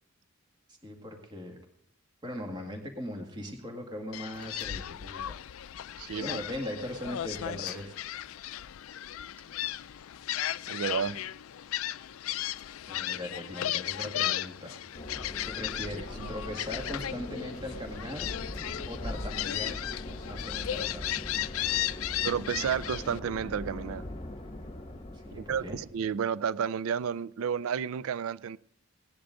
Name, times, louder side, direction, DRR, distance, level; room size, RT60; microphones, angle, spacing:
voice 1, 0.8-1.6 2.2-5.4 6.2-8.0 12.9-14.8 15.5-18.3 18.9-19.8 20.1-21.1 25.1-25.8, left 1 dB, 20° right, 2.0 m, -39 dB
Gull seagull, 4.1-23.2, left 12 dB, 80° left, 0.4 m, -35 dB
sound 1, 4.3-4.8 6.9-7.0 7.3-8.1 9.0-9.4, left 2 dB, 10° left, 2.2 m, -52 dB
voice 2, 6.0-6.4 10.7-11.2 16.2-16.3 22.2-24.1 25.3-28.6, right 7 dB, 80° right, 0.4 m, -31 dB
sound 2, 14.9-25.9, left 1 dB, 30° left, 1.3 m, -41 dB
18.0 x 10.5 x 3.8 m
head